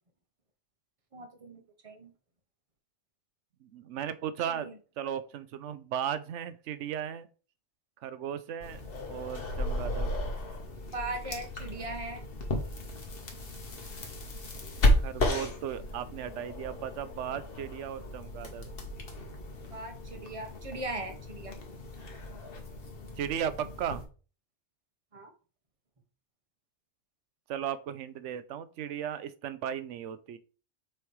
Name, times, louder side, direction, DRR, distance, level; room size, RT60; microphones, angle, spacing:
voice 1, 1.1-2.1 4.5-4.7 10.9-12.2 19.7-21.6 25.1-25.3, right 2 dB, 30° right, 1.0 m, -39 dB
voice 2, 3.6-4.7 5.0-7.3 8.0-8.8 9.1-10.3 15.0-18.7 23.2-24.0 27.5-30.4, right 9 dB, 75° right, 0.9 m, -36 dB
sound 1, 8.6-24.1, left 1 dB, 50° left, 1.4 m, -34 dB
6.4 x 3.3 x 4.7 m
omnidirectional pair, 1.3 m